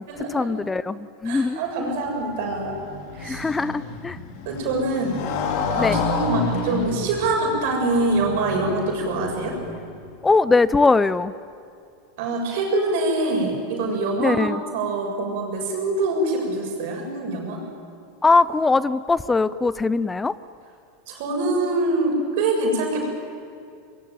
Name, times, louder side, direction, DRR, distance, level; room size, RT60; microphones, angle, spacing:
voice 1, 0.0-1.9 3.2-4.2 5.7-6.1 10.2-11.3 14.2-14.6 18.2-20.4, left 3 dB, 15° left, 17 dB, 0.6 m, -21 dB
voice 2, 1.3-2.7 3.1-3.4 4.4-5.2 5.8-9.5 12.2-14.5 14.7-17.6 21.1-23.1, right 2 dB, 65° right, 1 dB, 6.9 m, -24 dB
Motorcycle, 2.0-10.1, left 4 dB, 60° left, 3.4 m, -30 dB
25.0 x 21.5 x 9.4 m, 2.4 s
hypercardioid pair, 105°, 0 cm